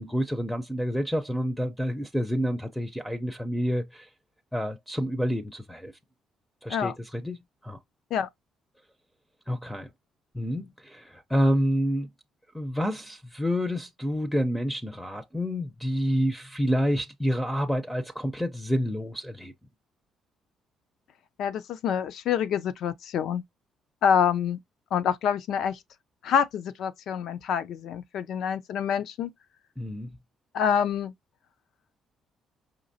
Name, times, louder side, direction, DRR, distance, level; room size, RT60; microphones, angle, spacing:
voice 1, 0.0-4.1 4.5-5.9 6.6-7.4 7.6-7.8 9.5-9.9 10.3-12.1 12.5-19.5 29.8-30.2, equal, 5° left, 0.5 m, -28 dB
voice 2, 21.4-23.4 24.0-24.6 24.9-25.8 26.2-29.3 30.5-31.1, left 8 dB, 70° left, 0.5 m, -26 dB
5.2 x 2.9 x 2.7 m
cardioid pair, 120°, 0 cm